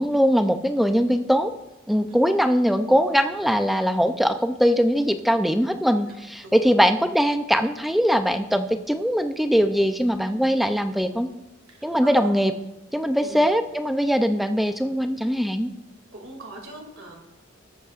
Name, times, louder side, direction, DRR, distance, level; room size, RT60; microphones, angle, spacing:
voice 1, 0.0-1.5 1.9-11.3 11.8-12.5 12.9-15.7, equal, ahead, 7 dB, 0.5 m, -21 dB
voice 2, 6.1-6.8 11.7-12.3 13.2-13.5 16.1-17.2, right 2 dB, 75° right, 1 dB, 2.5 m, -42 dB
19.0 x 8.4 x 2.5 m, 0.97 s
head